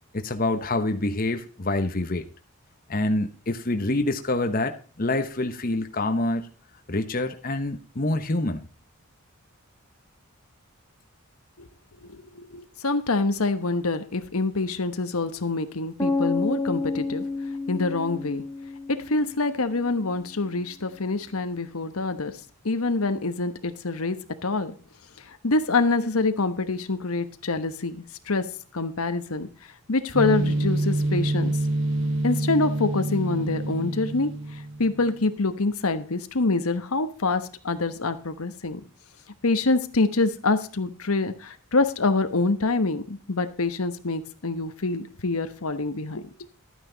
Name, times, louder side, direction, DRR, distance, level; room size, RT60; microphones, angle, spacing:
voice 1, 0.1-2.2 2.9-6.5 6.9-8.7, left 2 dB, 40° left, 7 dB, 1.0 m, -26 dB
voice 2, 12.0-17.2 17.7-18.4 19.1-22.4 22.6-24.2 24.4-24.7 25.3-28.0 28.3-28.4 28.7-29.5 29.9-31.5 32.2-38.8 39.4-46.3, left 3 dB, 80° left, 9 dB, 1.2 m, -26 dB
sound 1, 16.0-19.9, left 3 dB, 15° left, 1.1 m, -30 dB
sound 2, 30.1-35.0, right 1 dB, 55° right, 1.0 m, -26 dB
12.5 x 9.2 x 4.0 m, 0.39 s
head